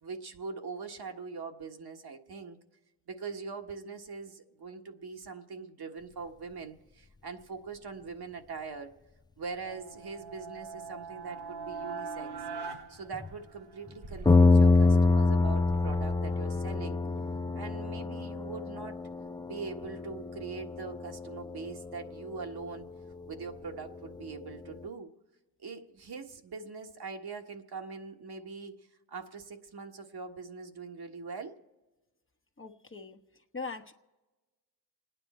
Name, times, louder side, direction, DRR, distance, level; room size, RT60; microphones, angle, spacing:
voice 1, 0.0-2.6 3.1-8.9 9.4-12.3 12.9-17.0 17.5-19.0 19.4-22.9 23.3-25.1 25.6-31.6, right 4 dB, 50° right, 4 dB, 1.6 m, -42 dB
sound 1, 9.6-13.9, right 5 dB, 80° right, 2.8 m, -41 dB
sound 2, 13.1-13.3 13.9-14.0 14.2-24.9, left 3 dB, 10° left, 0.4 m, -27 dB
sound 3, 14.0-17.6, right 2 dB, 15° right, 0.8 m, -44 dB
voice 2, 32.6-33.2 33.5-33.9, left 4 dB, 25° left, 5 dB, 1.1 m, -40 dB
28.0 x 9.9 x 4.3 m, 1.2 s
supercardioid pair, 60°, 49 cm